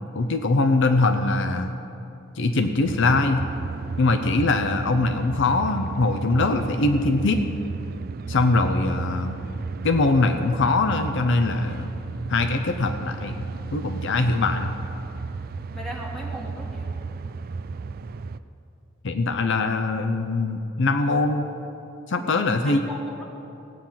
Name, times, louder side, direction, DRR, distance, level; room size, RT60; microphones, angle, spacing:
voice 1, 0.1-1.7 2.4-3.4 4.0-7.4 8.3-9.4 9.8-11.9 12.3-13.5 13.7-14.7 19.0-21.5 22.1-22.8, left 3 dB, 65° left, 7 dB, 0.7 m, -22 dB
sound 1, 2.8-18.4, right 4 dB, 50° right, 0.4 m, -33 dB
voice 2, 15.7-16.9 22.6-23.2, equal, ahead, -4 dB, 2.2 m, -37 dB
16.5 x 8.9 x 5.7 m, 2.8 s
head